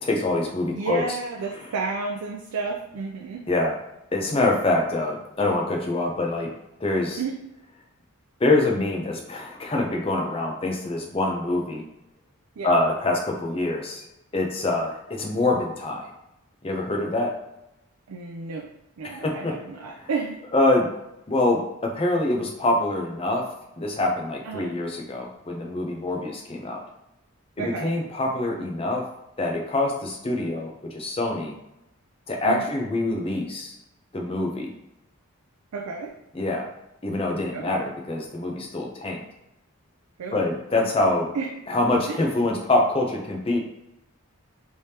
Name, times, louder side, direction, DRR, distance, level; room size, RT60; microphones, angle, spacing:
voice 1, 0.0-1.0 3.5-3.7 4.1-6.5 6.8-7.2 8.4-11.8 12.6-14.0 14.3-16.1 16.6-17.3 19.0-19.5 20.0-20.1 20.5-20.9 21.3-23.5 23.8-26.8 27.8-29.1 29.4-31.5 32.3-33.7 34.1-34.7 36.3-36.7 37.0-39.2 40.3-41.3 41.7-43.6, left 2 dB, 25° left, 0 dB, 0.5 m, -25 dB
voice 2, 0.7-3.5 7.2-7.4 12.6-12.7 18.1-18.7 19.0-20.4 24.4-24.7 27.6-27.9 32.4-32.7 35.7-36.1 37.5-37.9 40.2-40.5 40.8-41.5 42.1-42.3, right 4 dB, 85° right, 0 dB, 0.4 m, -32 dB
3.3 x 3.3 x 2.8 m, 0.89 s
head